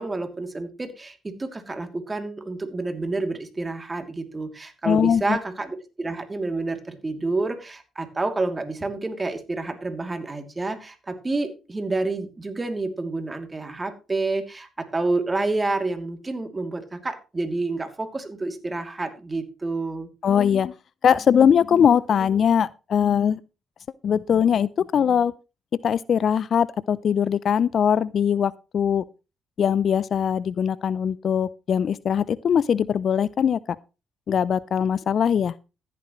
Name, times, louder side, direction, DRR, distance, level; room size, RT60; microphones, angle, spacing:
voice 1, 0.0-20.1, right 3 dB, 25° right, 2.7 m, -29 dB
voice 2, 4.8-5.4 20.2-20.7 21.0-23.4 24.0-25.3 25.8-29.0 29.6-33.6 34.3-35.5, left 8 dB, 55° left, 0.4 m, -21 dB
14.0 x 10.0 x 3.1 m
hypercardioid pair, 45°, 0 cm